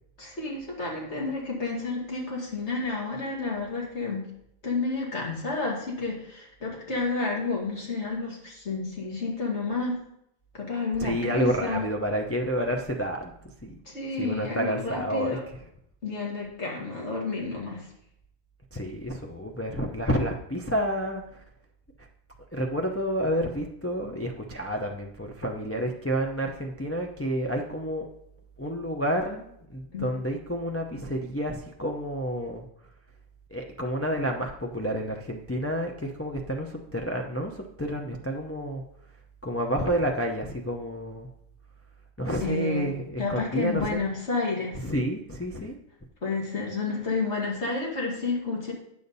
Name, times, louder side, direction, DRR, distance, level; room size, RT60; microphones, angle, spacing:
voice 1, 0.2-4.3 4.6-10.0 10.5-11.9 13.9-15.4 16.0-17.9 29.9-30.1 42.4-42.9 43.2-44.8 46.2-48.7, left 3 dB, 55° left, -2 dB, 2.3 m, -30 dB
voice 2, 11.0-13.3 13.6-13.8 14.2-15.4 18.7-21.2 22.5-28.1 28.6-32.6 33.5-38.8 39.4-41.3 42.2-44.0 44.8-45.7, equal, 20° left, 1 dB, 0.4 m, -29 dB
8.5 x 6.9 x 4.1 m, 0.77 s
omnidirectional pair, 1.4 m